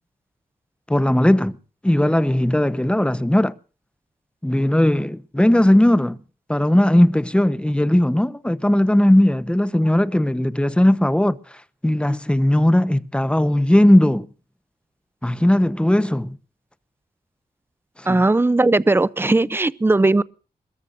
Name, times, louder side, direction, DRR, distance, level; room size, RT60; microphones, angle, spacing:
voice 1, 0.9-1.6 1.8-3.5 4.4-6.2 6.5-14.3 15.2-16.4 18.0-18.2, left 1 dB, 5° left, 1.0 m, -18 dB
voice 2, 18.1-20.2, right 2 dB, 15° right, 0.6 m, -18 dB
22.0 x 20.0 x 2.6 m
wide cardioid pair, 95°, 15 cm